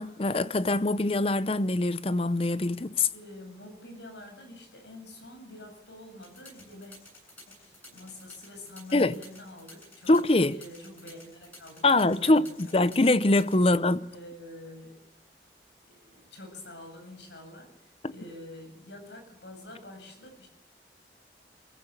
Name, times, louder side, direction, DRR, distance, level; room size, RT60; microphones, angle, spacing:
voice 1, 0.0-3.1 8.9-9.2 10.1-10.6 11.8-14.0 18.0-18.1, left 2 dB, 35° left, 0.7 m, -23 dB
voice 2, 3.1-7.0 7.5-10.1 10.5-12.6 13.6-13.7 14.1-15.0 15.8-20.5, left 1 dB, 85° left, 7.4 m, -47 dB
sound 1, 6.2-13.6, left 2 dB, 10° left, 7.9 m, -51 dB
23.5 x 15.0 x 8.3 m
head